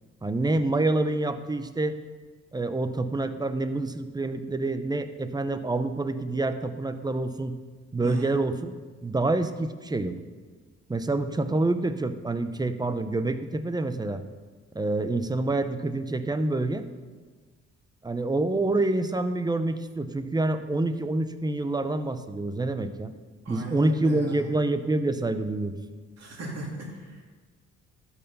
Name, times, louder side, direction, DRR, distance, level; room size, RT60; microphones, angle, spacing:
voice 1, 0.2-2.0 2.5-7.6 7.9-8.7 9.0-10.2 10.9-14.2 14.7-16.8 18.0-23.1 23.5-25.8, right 2 dB, 15° right, 10 dB, 0.7 m, -27 dB
voice 2, 8.0-8.3 23.4-24.4 26.2-27.2, right 2 dB, 60° right, -1 dB, 2.8 m, -37 dB
12.5 x 5.6 x 5.5 m, 1.4 s
cardioid pair, 90°, 30 cm